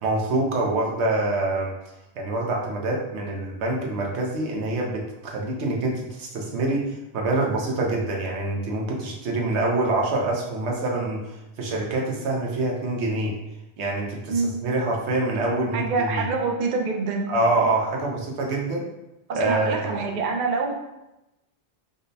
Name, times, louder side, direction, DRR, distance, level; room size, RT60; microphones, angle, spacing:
voice 1, 0.0-1.7 2.2-6.8 7.1-11.2 11.6-13.3 13.8-16.2 17.3-18.9 19.4-20.0, right 2 dB, 80° right, -1 dB, 1.0 m, -25 dB
voice 2, 15.7-17.3 19.3-20.7, right 4 dB, 55° right, 2 dB, 0.5 m, -26 dB
5.2 x 2.1 x 2.6 m, 0.93 s
omnidirectional pair, 1.1 m